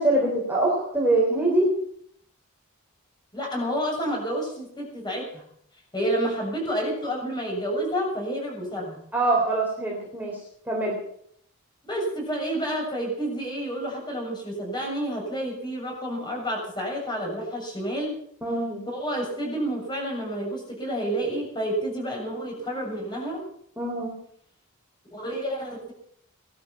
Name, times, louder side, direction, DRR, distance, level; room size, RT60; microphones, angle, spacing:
voice 1, 0.0-1.7 9.1-10.4 10.7-11.0 18.4-18.8 23.8-24.2, right 2 dB, 10° right, -3 dB, 3.5 m, -24 dB
voice 2, 3.3-5.4 5.9-9.0 11.8-18.2 18.9-23.4 25.1-25.9, right 1 dB, 20° left, -1 dB, 7.0 m, -29 dB
19.0 x 12.5 x 5.8 m, 0.67 s
head